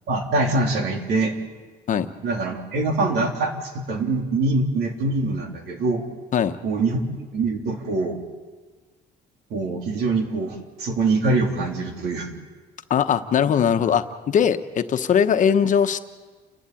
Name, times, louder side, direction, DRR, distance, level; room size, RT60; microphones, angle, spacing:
voice 1, 0.1-1.3 2.2-6.0 6.6-7.0 7.3-8.2 9.5-12.3, right 3 dB, 75° right, 2 dB, 3.6 m, -24 dB
voice 2, 12.9-16.0, left 8 dB, 50° left, 8 dB, 1.2 m, -20 dB
29.5 x 11.5 x 9.2 m, 1.4 s
cardioid pair, 110°, 17 cm